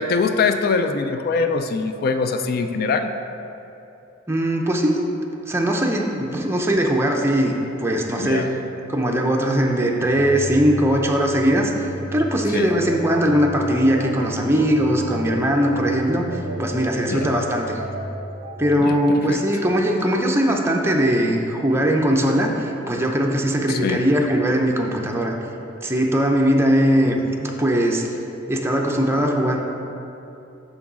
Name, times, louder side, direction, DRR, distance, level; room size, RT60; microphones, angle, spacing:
voice 1, 0.0-3.1 8.2-8.5 12.5-12.7 17.1-17.3 18.8-19.4 23.7-24.0, left 4 dB, 50° left, 8 dB, 0.3 m, -23 dB
voice 2, 4.3-5.1 5.5-8.5 8.9-11.7 12.1-16.3 16.6-17.8 18.6-25.3 25.8-28.0 28.5-29.6, equal, 15° right, 1 dB, 0.5 m, -20 dB
sound 1, 10.0-18.8, right 1 dB, 65° right, 0.5 m, -33 dB
6.2 x 3.9 x 6.0 m, 2.9 s
head